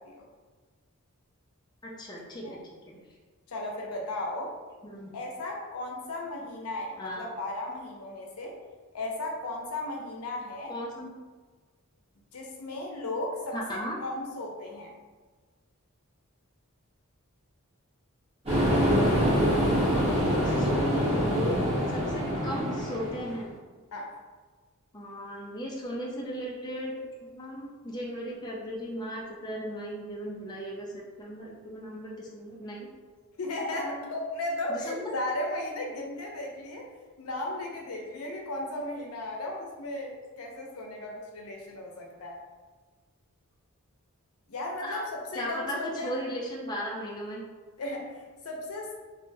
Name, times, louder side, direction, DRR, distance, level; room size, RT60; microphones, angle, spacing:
voice 1, 1.8-2.6 2.9-3.0 4.8-5.1 7.0-7.3 10.7-11.1 13.5-14.0 20.4-23.5 24.9-27.0 27.3-32.9 33.7-34.1 34.7-35.2 44.8-45.0 45.3-47.4, equal, 20° left, -4 dB, 0.4 m, -36 dB
voice 2, 3.5-4.5 5.1-8.6 8.9-10.7 12.3-14.9 23.9-24.2 33.4-36.9 37.2-42.4 44.5-46.1 47.8-48.9, left 2 dB, 85° left, 0 dB, 0.6 m, -35 dB
sound 1, 18.5-23.4, equal, 30° right, 1.1 m, -25 dB
3.2 x 2.6 x 2.7 m, 1.4 s
head